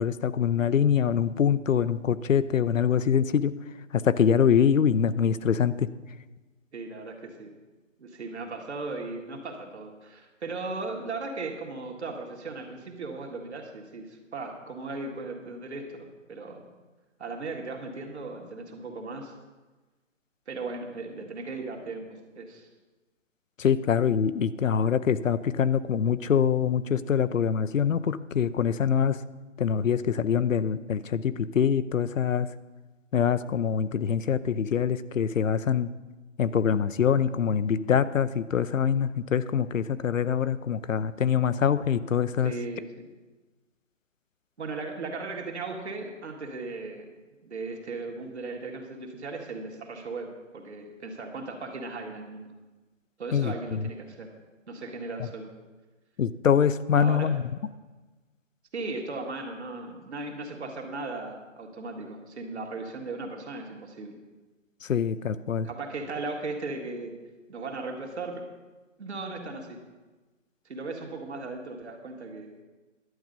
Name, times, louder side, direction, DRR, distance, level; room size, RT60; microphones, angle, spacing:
voice 1, 0.0-3.5 3.9-5.9 23.6-29.2 29.6-32.5 33.1-35.9 36.4-42.5 53.3-53.9 56.2-57.4 64.9-65.7, left 7 dB, 80° left, 15 dB, 0.6 m, -24 dB
voice 2, 6.7-7.5 8.0-16.7 17.2-19.3 20.5-22.7 42.4-43.1 44.6-47.1 47.4-52.5 53.2-54.3 54.7-55.5 56.9-57.4 58.7-64.2 65.6-67.1 67.5-68.4 69.0-69.8 70.7-72.5, right 3 dB, 60° right, 2 dB, 2.0 m, -37 dB
11.0 x 8.4 x 5.3 m, 1.2 s
figure-of-eight pair, 150°, 38 cm